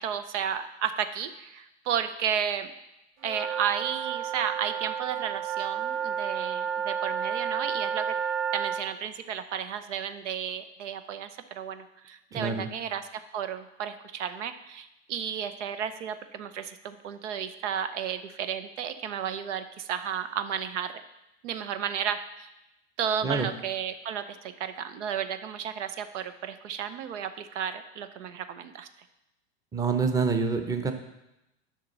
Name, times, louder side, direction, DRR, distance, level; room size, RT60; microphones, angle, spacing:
voice 1, 0.0-2.7 3.2-8.1 8.5-11.3 11.6-13.1 13.3-20.9 21.4-22.5 23.0-28.9, right 8 dB, 85° right, 10 dB, 0.8 m, -33 dB
sound 1, 3.2-8.8, right 8 dB, 45° right, 2.3 m, -31 dB
voice 2, 12.3-12.7 23.2-23.5 29.7-30.9, right 5 dB, 10° right, 6 dB, 0.7 m, -26 dB
10.0 x 6.0 x 4.0 m, 0.92 s
supercardioid pair, 125°, 35 cm